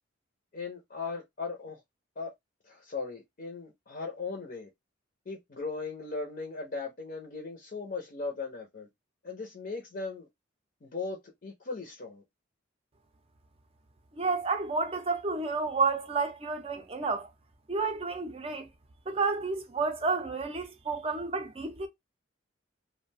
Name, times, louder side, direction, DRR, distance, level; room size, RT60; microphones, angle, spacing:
voice 1, 0.5-1.8 2.2-2.3 2.6-4.7 5.3-8.9 9.2-10.3 10.8-12.2, left 4 dB, 45° left, 0.5 m, -38 dB
voice 2, 14.2-17.3 17.7-18.7 19.1-21.9, right 4 dB, 30° right, 0.4 m, -30 dB
2.4 x 2.1 x 3.2 m
head